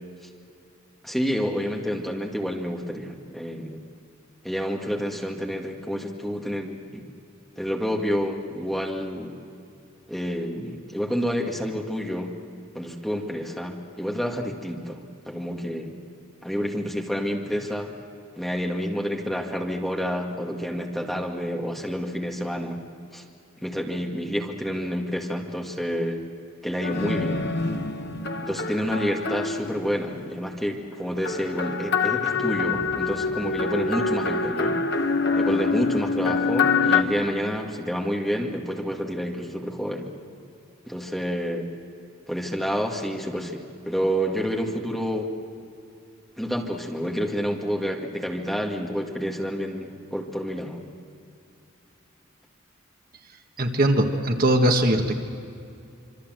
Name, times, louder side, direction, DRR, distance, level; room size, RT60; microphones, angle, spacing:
voice 1, 1.0-3.8 4.4-7.0 7.6-9.4 10.1-12.3 12.7-15.9 16.4-17.9 18.4-22.8 23.1-23.2 23.6-26.2 26.6-27.5 28.4-34.8 35.3-40.1 40.9-41.7 42.3-45.3 46.4-50.8, equal, ahead, 0 dB, 2.1 m, -29 dB
sound 1, 26.8-30.4 31.2-37.0, left 4 dB, 50° left, 1.2 m, -25 dB
voice 2, 53.6-55.1, right 1 dB, 45° right, 4 dB, 1.7 m, -20 dB
26.5 x 25.0 x 7.8 m, 2.5 s
head